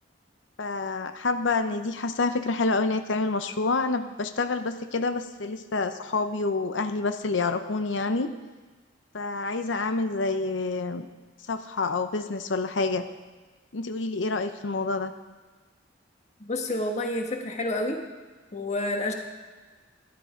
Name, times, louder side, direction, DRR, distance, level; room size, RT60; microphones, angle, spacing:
voice 1, 0.6-8.3 9.1-11.1 11.5-13.0 13.7-15.1, left 3 dB, 75° left, 9 dB, 0.7 m, -28 dB
voice 2, 16.4-18.0 18.5-19.1, left 1 dB, 40° left, 3 dB, 1.5 m, -29 dB
13.5 x 11.5 x 5.1 m, 1.3 s
head